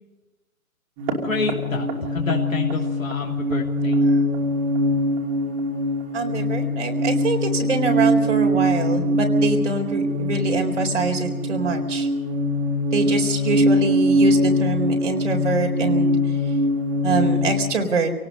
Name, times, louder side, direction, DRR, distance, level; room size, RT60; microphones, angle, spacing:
sound 1, 1.0-17.7, equal, 20° right, 3.0 m, -22 dB
voice 1, 1.2-4.1 13.0-13.6, left 4 dB, 70° left, -1 dB, 3.2 m, -29 dB
voice 2, 6.1-12.1 12.9-16.2 17.0-18.1, right 4 dB, 55° right, 3 dB, 4.2 m, -25 dB
26.5 x 18.5 x 5.4 m, 1.1 s
figure-of-eight pair, 135°, 42 cm